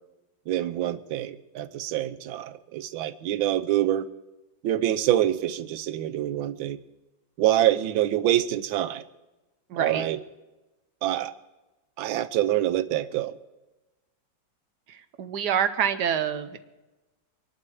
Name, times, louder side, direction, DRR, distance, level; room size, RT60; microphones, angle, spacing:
voice 1, 0.5-4.1 4.6-6.8 7.4-9.0 9.8-10.2 11.0-11.3 12.0-13.3, right 12 dB, 90° right, 13 dB, 1.5 m, -26 dB
voice 2, 9.7-10.0 14.9-16.6, right 8 dB, 65° right, 10 dB, 1.4 m, -27 dB
24.0 x 11.0 x 4.7 m, 1.1 s
omnidirectional pair, 2.1 m